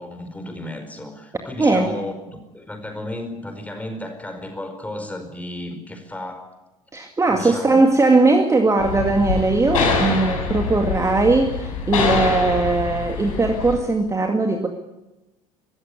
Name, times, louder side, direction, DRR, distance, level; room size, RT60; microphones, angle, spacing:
voice 1, 0.0-6.5 7.3-7.8, left 1 dB, 10° left, 6 dB, 4.9 m, -34 dB
voice 2, 1.6-1.9 6.9-14.7, right 3 dB, 15° right, 4 dB, 2.1 m, -19 dB
sound 1, 8.8-13.7, left 4 dB, 70° left, 5.9 m, -24 dB
24.5 x 15.0 x 9.8 m, 1.0 s
figure-of-eight pair, 65°, 18 cm